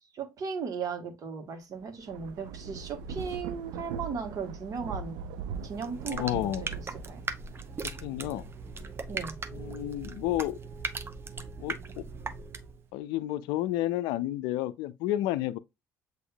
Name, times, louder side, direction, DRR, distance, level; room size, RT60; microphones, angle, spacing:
voice 1, 0.1-5.2 5.6-6.5 7.1-7.2 9.1-9.4, right 5 dB, 50° right, 1.3 m, -36 dB
Thunder / Rain, 1.8-10.7 11.2-12.5, right 6 dB, 70° right, 0.4 m, -42 dB
sound 1, 5.6-12.8, right 4 dB, 30° right, 0.7 m, -39 dB
voice 2, 6.1-6.6 7.8-8.5 9.5-10.6 11.6-12.0 12.9-15.6, left 14 dB, 70° left, 0.4 m, -31 dB
7.7 x 2.6 x 2.3 m
hypercardioid pair, 60°, 8 cm